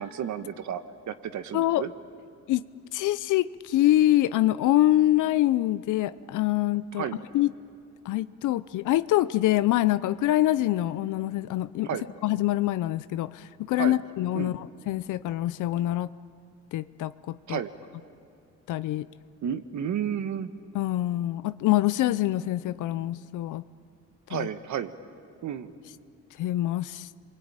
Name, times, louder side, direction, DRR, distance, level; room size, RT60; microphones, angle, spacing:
voice 1, 0.0-1.9 7.0-7.2 11.8-12.0 13.8-14.0 14.3-14.5 17.5-17.7 19.4-20.5 24.3-24.9 25.4-25.7, right 9 dB, 70° right, 10 dB, 1.4 m, -32 dB
voice 2, 2.9-7.1 7.3-7.5 8.1-11.9 12.2-16.1 16.7-17.6 18.7-19.1 20.7-23.6 24.3-24.5 26.4-27.1, left 14 dB, 80° left, 14 dB, 0.7 m, -25 dB
28.0 x 22.5 x 8.9 m, 2.3 s
cardioid pair, 90°, 30 cm